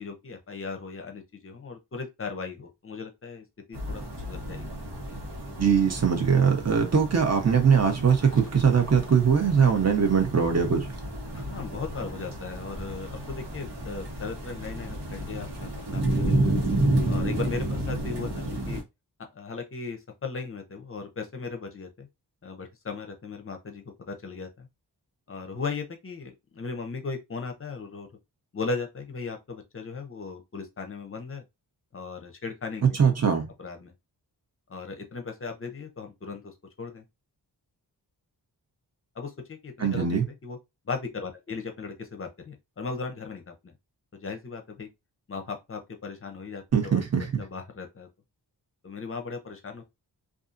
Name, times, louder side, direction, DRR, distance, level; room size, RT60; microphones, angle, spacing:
voice 1, 0.0-4.7 8.3-8.4 11.3-16.5 17.0-18.8 19.3-22.1 22.4-24.7 25.3-28.1 28.5-31.4 31.9-32.8 33.6-33.9 34.7-37.0 39.2-40.6 40.8-43.7 44.1-44.9 45.3-48.1 48.8-49.8, left 4 dB, 35° left, 0.6 m, -37 dB
sound 1, 3.7-18.8, right 1 dB, 85° right, 1.1 m, -31 dB
voice 2, 5.6-10.9 32.8-33.5 39.8-40.3 46.7-47.4, right 6 dB, 40° right, 0.7 m, -21 dB
2.6 x 2.4 x 2.4 m
wide cardioid pair, 140°, 41 cm